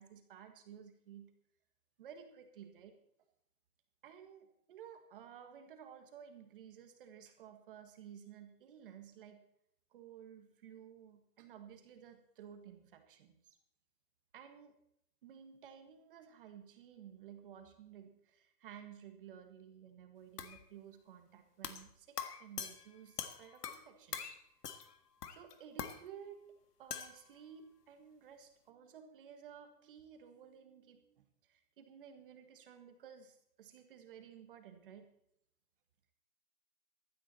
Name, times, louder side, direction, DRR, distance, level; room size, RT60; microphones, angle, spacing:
voice 1, 0.0-1.3 2.0-3.0 4.0-9.4 9.9-13.6 14.3-14.8 15.2-24.4 25.3-35.1, right 8 dB, 35° right, 7 dB, 1.6 m, -55 dB
sound 1, 20.4-20.6 21.6-21.9 22.2-23.9 24.1-24.4 24.6-25.0 25.2-26.0 26.9-27.2, left 8 dB, 70° left, 1.8 m, -43 dB
16.0 x 13.0 x 4.2 m, 0.72 s
hypercardioid pair, 170°, 49 cm